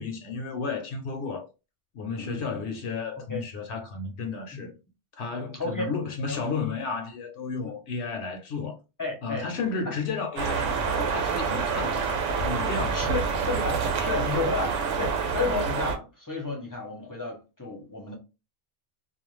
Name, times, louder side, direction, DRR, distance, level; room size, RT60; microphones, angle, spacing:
voice 1, 0.0-1.5 1.9-4.7 5.2-8.8 9.2-13.1, left 4 dB, 70° left, 0.9 m, -33 dB
voice 2, 2.1-2.5 3.3-3.4 4.5-4.7 5.5-5.9 6.3-6.4 7.6-7.7 9.0-9.5 9.8-9.9 10.5-10.6 12.9-18.1, left 3 dB, 20° left, 0.5 m, -32 dB
sound 1, 10.4-16.0, right 5 dB, 85° right, 1.0 m, -27 dB
2.4 x 2.2 x 3.0 m
omnidirectional pair, 1.2 m